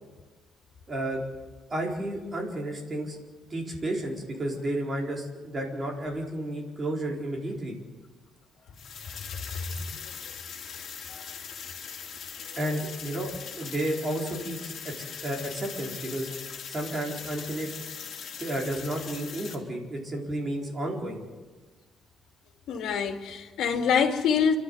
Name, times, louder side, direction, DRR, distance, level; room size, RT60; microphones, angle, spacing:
voice 1, 0.9-1.2 1.7-3.2 3.5-7.7 12.6-16.3 16.7-17.7 18.4-21.2, right 1 dB, 25° right, 4.4 m, -32 dB
sound 1, 8.7-19.5, left 7 dB, 45° left, 3.4 m, -40 dB
voice 2, 22.7-24.6, left 7 dB, 75° left, 2.6 m, -25 dB
29.0 x 12.5 x 8.1 m
cardioid pair, 150°, 0 cm